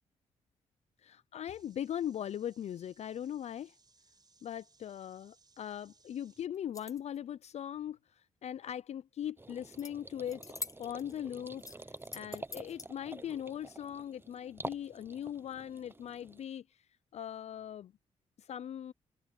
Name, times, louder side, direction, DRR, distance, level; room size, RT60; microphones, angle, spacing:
voice 1, 1.0-3.7 4.4-16.9 17.1-17.9 18.4-18.9, left 10 dB, 60° left, 0.4 m, -40 dB
sound 1, 1.5-6.5, right 3 dB, 35° right, 4.5 m, -67 dB
sound 2, 6.5-7.2 9.8-9.9 10.2-11.2 11.6-12.9, left 3 dB, 25° left, 1.1 m, -45 dB
sound 3, 9.4-16.4, right 2 dB, 15° right, 0.9 m, -48 dB
cardioid pair, 60°, 13 cm